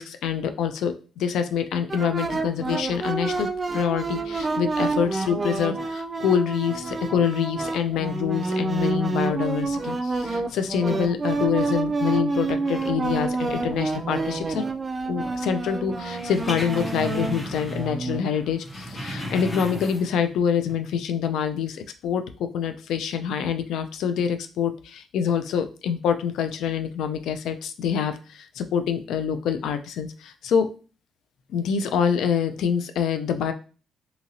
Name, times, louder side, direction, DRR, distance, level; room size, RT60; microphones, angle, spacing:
voice 1, 0.0-14.6 15.1-30.7 31.5-33.5, left 7 dB, 80° left, 8 dB, 0.3 m, -26 dB
sound 1, 1.9-18.2, right 3 dB, 30° right, 0.3 m, -28 dB
sound 2, 16.0-18.0 18.3-20.3 20.6-20.7, equal, 10° left, 0.6 m, -35 dB
2.8 x 2.7 x 2.6 m, 0.36 s
cardioid pair, 90°, 0 cm